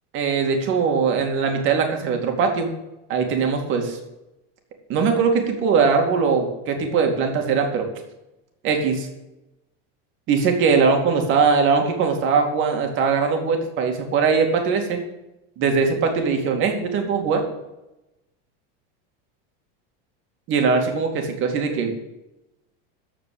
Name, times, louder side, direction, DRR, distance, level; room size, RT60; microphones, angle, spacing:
voice 1, 0.1-2.7 3.1-4.0 4.9-7.9 8.6-9.1 10.3-15.0 15.6-17.4 20.5-21.9, right 5 dB, 40° right, 4 dB, 2.5 m, -21 dB
14.5 x 4.9 x 8.7 m, 0.95 s
supercardioid pair, 155°, 31 cm